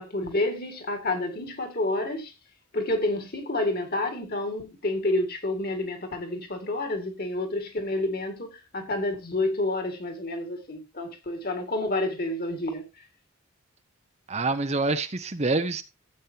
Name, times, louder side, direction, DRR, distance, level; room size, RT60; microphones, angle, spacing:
voice 1, 0.0-2.3 2.7-12.9, left 2 dB, 45° left, 2.2 m, -29 dB
voice 2, 14.3-15.8, right 3 dB, 30° right, 0.7 m, -26 dB
14.0 x 8.5 x 2.8 m
head